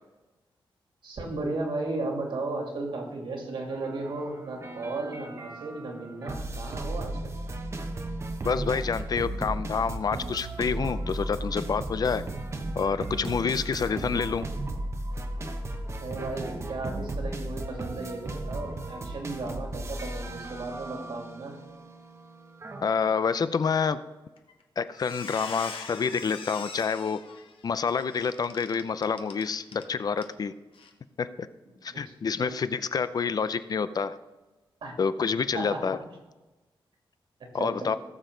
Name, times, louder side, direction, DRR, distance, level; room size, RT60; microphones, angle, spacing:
voice 1, 1.0-7.3 16.0-21.6 31.9-32.0 32.4-32.6 34.8-34.9 35.5-35.9 37.5-37.9, right 2 dB, 70° right, 1 dB, 3.0 m, -35 dB
sound 1, 3.7-22.9, right 1 dB, 30° right, 1.0 m, -35 dB
voice 2, 8.4-12.3 12.8-14.5 22.8-24.0 24.8-27.2 27.6-30.5 31.2-31.5 31.8-34.2 35.0-36.0 37.5-38.0, left 5 dB, 45° left, 13 dB, 0.5 m, -28 dB
Squeak, 24.4-24.6 24.9-29.9 30.2-30.3 30.7-30.9, left 5 dB, 75° left, 1.3 m, -42 dB
18.0 x 7.2 x 3.9 m, 1.1 s
wide cardioid pair, 145°, 9 cm